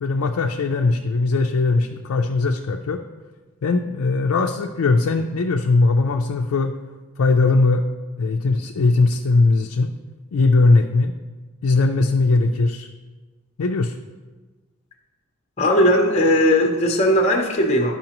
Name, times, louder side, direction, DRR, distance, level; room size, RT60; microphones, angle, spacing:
voice 1, 0.0-3.0 3.6-6.7 7.2-7.8 8.2-9.9 10.3-11.1 11.6-12.9 13.6-14.0, left 3 dB, 75° left, 3 dB, 0.4 m, -19 dB
voice 2, 15.6-18.0, equal, 30° left, 1 dB, 0.7 m, -18 dB
10.5 x 5.6 x 2.9 m, 1.3 s
head